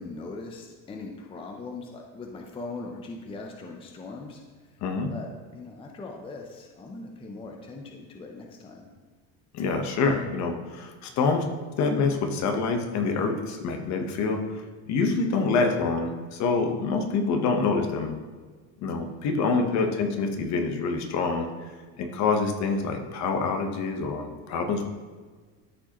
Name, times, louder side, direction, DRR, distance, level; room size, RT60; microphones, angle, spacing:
voice 1, 0.0-4.4 5.1-8.9 19.5-19.9, left 3 dB, 15° left, 2 dB, 0.5 m, -40 dB
voice 2, 4.8-5.1 9.5-11.5 11.8-14.6 14.9-18.1 18.8-21.5 22.0-24.9, left 4 dB, 50° left, 4 dB, 1.0 m, -26 dB
13.0 x 4.8 x 3.0 m, 1.4 s
cardioid pair, 145°, 35 cm